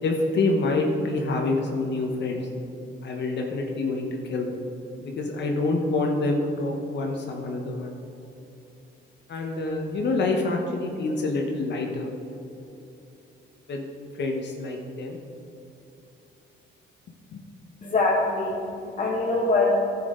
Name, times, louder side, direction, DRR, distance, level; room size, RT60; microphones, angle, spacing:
voice 1, 0.0-2.5 3.0-4.6 5.0-7.9 9.3-12.1 13.7-13.9 14.2-15.2 17.3-17.4, left 2 dB, 60° left, 1 dB, 1.1 m, -27 dB
voice 2, 17.8-19.7, left 3 dB, 40° left, -5 dB, 1.6 m, -23 dB
11.0 x 7.5 x 3.8 m, 2.9 s
cardioid pair, 90°, 20 cm